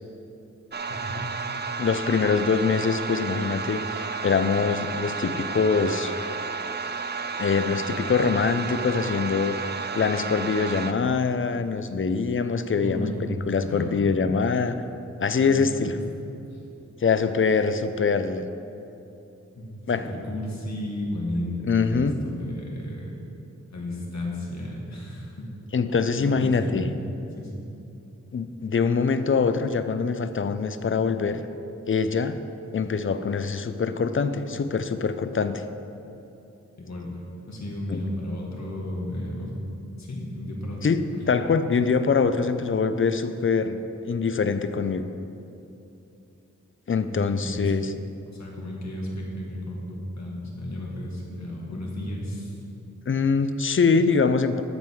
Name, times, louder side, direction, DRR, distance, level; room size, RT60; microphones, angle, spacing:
sound 1, 0.7-10.9, right 4 dB, 35° right, 0.5 m, -32 dB
voice 1, 0.9-1.3 12.7-13.3 13.6-14.1 15.4-15.6 15.8-16.0 16.5-16.6 19.6-19.7 19.9-23.1 23.7-25.5 26.2-27.1 27.4-27.6 36.8-37.1 37.5-39.6 40.0-41.4 47.0-47.7 48.3-52.6, left 1 dB, 65° left, -2 dB, 1.9 m, -33 dB
voice 2, 1.8-6.1 7.4-14.8 15.2-16.0 17.0-18.5 19.9-20.1 21.7-22.2 25.7-26.8 28.3-31.4 31.9-32.4 32.7-35.6 37.9-38.0 40.8-43.8 44.0-45.1 46.9-47.9 53.1-54.6, left 5 dB, 45° left, 11 dB, 0.5 m, -24 dB
13.0 x 5.3 x 4.7 m, 2.8 s
wide cardioid pair, 70°, 30 cm